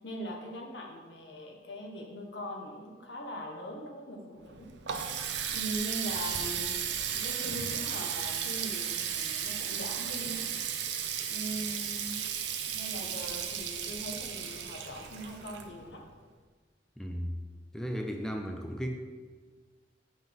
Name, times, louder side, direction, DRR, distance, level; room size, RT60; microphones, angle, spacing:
voice 1, 0.0-4.7 5.5-6.7 7.1-10.4 11.3-12.2 12.7-16.0, equal, 80° left, 1 dB, 1.2 m, -41 dB
Water tap faucet, 4.4-16.1, right 8 dB, 90° right, 0.6 m, -35 dB
voice 2, 17.0-17.4 17.7-18.9, equal, 5° left, 3 dB, 0.4 m, -35 dB
7.7 x 5.5 x 3.6 m, 1.5 s
head